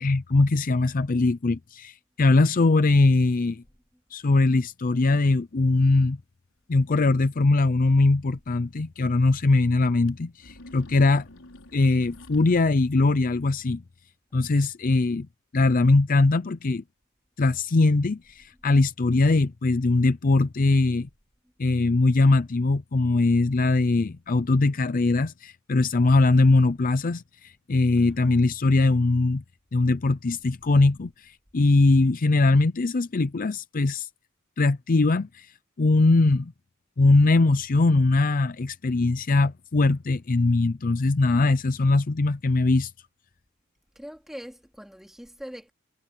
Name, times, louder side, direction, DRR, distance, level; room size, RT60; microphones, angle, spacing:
voice 1, 0.0-3.6 4.1-6.2 6.7-11.3 11.7-13.8 14.3-15.3 15.5-16.8 17.4-21.1 21.6-29.4 29.7-34.1 34.6-35.5 35.8-36.5 37.0-42.9, left 3 dB, 40° left, 0.5 m, -21 dB
sound 1, 6.5-6.6 7.0-7.1 8.6-8.7 9.0-9.1 10.0-10.1 10.4-12.6, left 1 dB, 70° left, 5.7 m, -47 dB
voice 2, 28.0-28.3 43.9-45.7, equal, ahead, 3.1 m, -42 dB
head